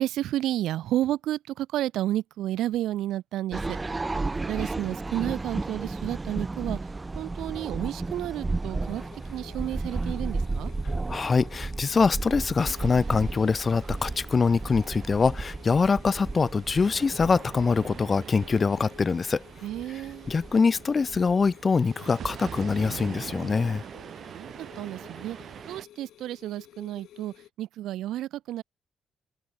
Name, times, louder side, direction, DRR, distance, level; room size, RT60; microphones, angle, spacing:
voice 1, 0.0-3.8 4.5-6.8 7.2-9.0 9.3-10.7 19.6-20.3 24.3-25.4 25.7-28.6, right 13 dB, 90° right, 0.4 m, -31 dB
sound 1, 3.5-21.4, right 3 dB, 20° right, 2.0 m, -34 dB
sound 2, 8.8-27.5, left 12 dB, 85° left, 4.2 m, -52 dB
voice 2, 11.1-19.4 20.3-23.8, left 5 dB, 35° left, 0.5 m, -24 dB
sound 3, 12.6-25.9, right 8 dB, 60° right, 5.2 m, -44 dB
cardioid pair, 95°, 0 cm